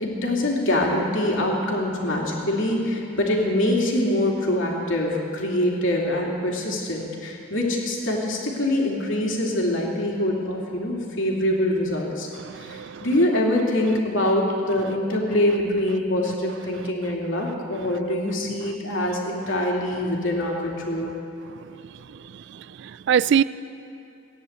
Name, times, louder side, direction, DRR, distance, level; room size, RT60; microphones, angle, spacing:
voice 1, 0.0-12.3 12.6-21.1, left 1 dB, 70° left, -2 dB, 2.9 m, -24 dB
voice 2, 12.4-13.1 22.5-23.4, right 8 dB, 60° right, 17 dB, 0.3 m, -23 dB
17.0 x 10.0 x 8.1 m, 2.8 s
head